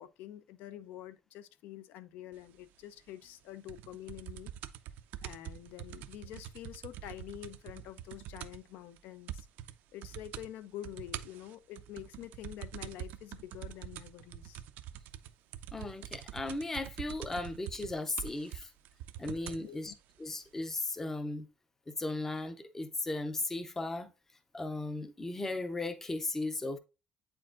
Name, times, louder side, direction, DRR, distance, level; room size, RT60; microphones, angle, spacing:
voice 1, 0.0-4.5 5.2-9.5 9.9-14.6 19.6-19.9, left 12 dB, 75° left, 0.5 m, -47 dB
sound 1, 3.7-8.7 9.0-9.1 9.3-9.7 10.0-10.5 10.8-19.7 20.5-20.6, right 11 dB, 70° right, 0.4 m, -44 dB
voice 2, 15.7-18.7 19.2-19.9 20.2-21.5 21.9-24.1 24.5-26.8, left 2 dB, 10° left, 0.5 m, -36 dB
8.4 x 4.5 x 2.5 m
cardioid pair, 175°, 3 cm